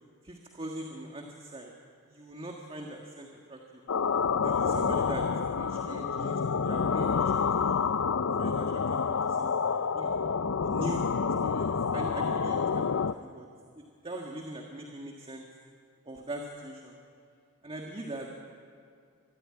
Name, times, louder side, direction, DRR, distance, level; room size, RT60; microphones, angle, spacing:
voice 1, 0.2-1.7 2.1-3.8 4.4-5.3 5.6-7.8 8.4-10.1 10.6-11.1 11.4-13.5 13.8-15.5 16.1-17.0 17.6-18.3, right 1 dB, 25° right, 0 dB, 1.8 m, -41 dB
sound 1, 3.9-13.1, left 5 dB, 60° left, 0.6 m, -28 dB
25.5 x 14.0 x 9.9 m, 2.3 s
head